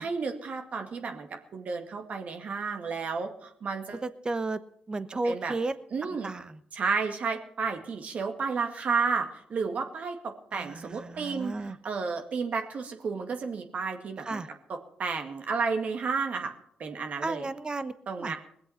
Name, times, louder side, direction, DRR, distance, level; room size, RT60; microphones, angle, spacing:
voice 1, 0.0-4.0 5.2-5.6 5.9-6.3 6.7-14.4 14.7-16.5 16.8-17.5 18.1-18.4, right 5 dB, 55° right, 5 dB, 2.1 m, -32 dB
voice 2, 4.0-4.6 4.9-5.7 6.2-6.6 10.5-11.8 14.2-14.5 17.2-17.9 18.2-18.3, right 3 dB, 30° right, 14 dB, 1.0 m, -33 dB
20.5 x 7.8 x 5.7 m, 0.67 s
hypercardioid pair, 50°, 3 cm